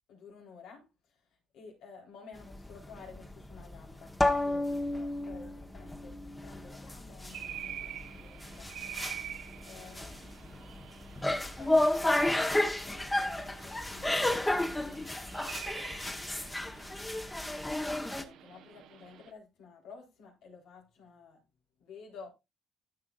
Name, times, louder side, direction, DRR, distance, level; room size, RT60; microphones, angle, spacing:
voice 1, 0.1-10.7 11.6-15.7 16.0-17.4 17.8-21.4 21.8-22.3, left 5 dB, 90° left, 3.8 m, -53 dB
sound 1, 2.4-18.2, left 1 dB, 15° left, 1.2 m, -32 dB
sound 2, 7.3-19.3, right 10 dB, 85° right, 1.2 m, -47 dB
13.5 x 5.9 x 2.5 m
cardioid pair, 90°, 0 cm